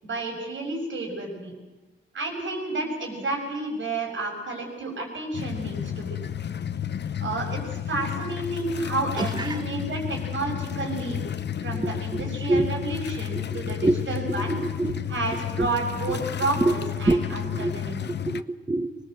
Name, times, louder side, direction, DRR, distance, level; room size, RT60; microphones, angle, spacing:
voice 1, 0.0-1.6 2.1-6.2 7.2-11.2 11.6-14.6 15.1-18.0, right 2 dB, 80° right, 1 dB, 7.1 m, -31 dB
sound 1, 5.3-18.4, left 10 dB, 65° left, 0.7 m, -32 dB
voice 2, 9.2-9.6 11.7-12.7 13.5-14.0 14.3-15.1 15.6-15.7 16.1-16.2 16.6-16.8 17.1-17.8 18.1-19.0, right 2 dB, 20° right, 6 dB, 1.2 m, -26 dB
24.5 x 20.5 x 7.9 m, 1.2 s
wide cardioid pair, 135°, 19 cm